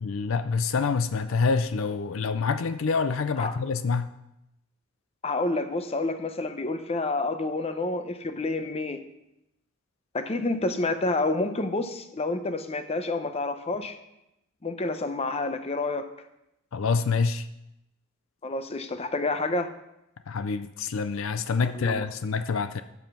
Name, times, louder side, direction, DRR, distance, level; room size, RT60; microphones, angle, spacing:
voice 1, 0.0-4.1 16.7-17.5 20.3-22.8, left 4 dB, 75° left, 11 dB, 0.5 m, -26 dB
voice 2, 5.2-9.1 10.1-14.0 14.6-16.1 18.4-19.7 21.6-22.1, left 2 dB, 30° left, 9 dB, 0.7 m, -29 dB
10.5 x 7.1 x 5.4 m, 0.87 s
head